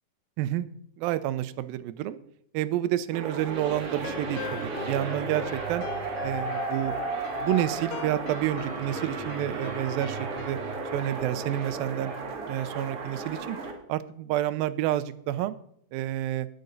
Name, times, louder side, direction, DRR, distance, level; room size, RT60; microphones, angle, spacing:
voice 1, 1.0-2.2 2.5-5.8 6.2-6.9 7.4-10.6 10.9-12.1 12.5-13.6 13.9-15.6 15.9-16.5, right 13 dB, 85° right, 14 dB, 2.4 m, -29 dB
sound 1, 3.1-13.7, right 3 dB, 45° right, 2.3 m, -34 dB
sound 2, 3.5-10.5, left 8 dB, 75° left, 2.4 m, -43 dB
18.0 x 7.8 x 4.0 m, 0.70 s
omnidirectional pair, 4.1 m